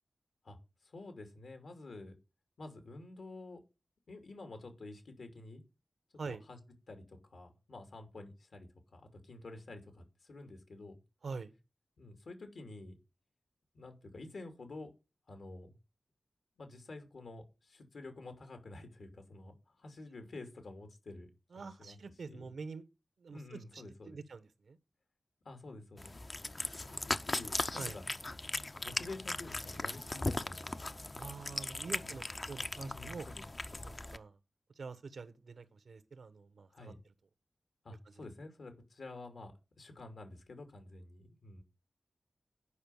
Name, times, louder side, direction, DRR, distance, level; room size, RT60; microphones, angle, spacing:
voice 1, 0.8-2.2 2.6-3.6 4.1-5.6 6.3-6.6 6.9-11.0 12.0-12.9 13.7-14.9 15.3-15.7 16.6-21.3 21.5-22.0 22.2-22.5 23.3-24.2 25.4-26.1 26.9-28.0 28.8-31.0 31.9-32.1 32.7-33.4 36.7-37.0 37.8-41.6, left 2 dB, 75° left, 3.0 m, -49 dB
voice 2, 21.5-22.8 23.2-24.8 27.8-28.0 31.1-33.3 33.8-34.4 34.8-37.1 38.2-38.3, right 4 dB, 80° right, 1.2 m, -46 dB
Cat, 26.0-34.2, left 2 dB, 30° left, 0.7 m, -38 dB
9.8 x 5.7 x 7.2 m
wide cardioid pair, 110°, 0 cm